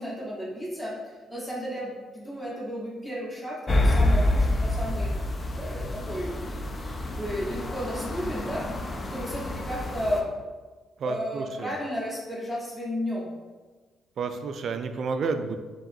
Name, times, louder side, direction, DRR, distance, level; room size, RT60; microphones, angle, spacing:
voice 1, 0.0-5.1 5.5-6.3 7.1-8.7 9.1-10.3 11.0-13.3, equal, 15° left, -6 dB, 1.2 m, -33 dB
sound 1, 3.7-10.2, left 1 dB, 35° left, 0.5 m, -27 dB
voice 2, 11.0-11.7 14.2-15.6, right 4 dB, 60° right, 8 dB, 0.3 m, -30 dB
4.7 x 2.9 x 2.7 m, 1.3 s
cardioid pair, 90°, 0 cm